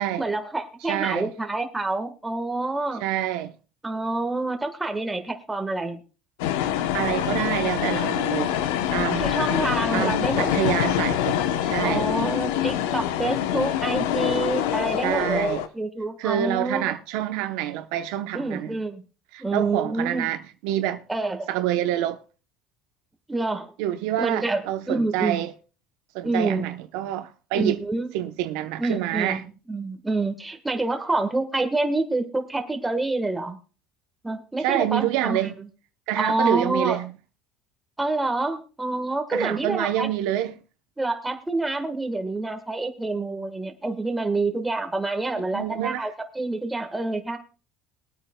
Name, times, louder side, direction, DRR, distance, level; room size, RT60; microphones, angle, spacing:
voice 1, 0.2-3.0 3.8-6.0 9.1-10.6 11.8-16.9 18.3-19.0 19.4-20.3 21.1-21.5 23.3-23.7 24.2-24.6 24.9-25.4 26.2-26.7 27.5-28.1 28.8-33.6 34.2-35.4 36.2-37.0 38.0-40.1 41.0-47.4, right 2 dB, 10° right, 1.4 m, -27 dB
voice 2, 0.8-1.3 3.0-3.5 6.9-8.6 8.9-9.3 9.9-12.1 15.0-15.6 16.2-18.8 19.3-21.0 21.5-22.2 23.8-25.5 26.1-27.8 28.1-29.5 34.6-35.5 36.1-37.1 39.3-40.6 45.5-46.1, right 13 dB, 75° right, 0.8 m, -27 dB
sound 1, 6.4-15.7, left 11 dB, 90° left, 0.8 m, -25 dB
22.0 x 8.9 x 2.2 m
cardioid pair, 125°, 0 cm